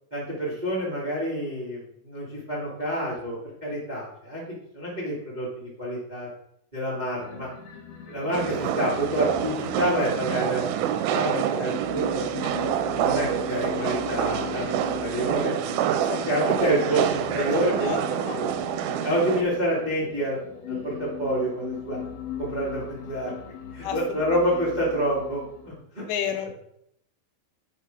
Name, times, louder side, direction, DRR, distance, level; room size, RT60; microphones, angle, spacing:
voice 1, 0.1-4.4 4.7-6.3 6.7-7.5 8.0-12.5 13.0-14.7 15.0-15.6 16.2-17.0 17.3-18.0 18.2-18.5 19.0-20.4 20.7-22.0 22.4-23.3 23.7-26.0, right 1 dB, 50° right, -6 dB, 0.5 m, -28 dB
sound 1, 7.2-25.8, left 7 dB, 65° left, 2.2 m, -39 dB
sound 2, 8.3-19.4, right 10 dB, 85° right, 2.8 m, -27 dB
voice 2, 17.4-18.4 20.7-21.1 23.8-24.2 26.0-26.5, left 9 dB, 80° left, 5 dB, 3.0 m, -32 dB
5.6 x 5.3 x 5.2 m, 0.73 s
omnidirectional pair, 5.3 m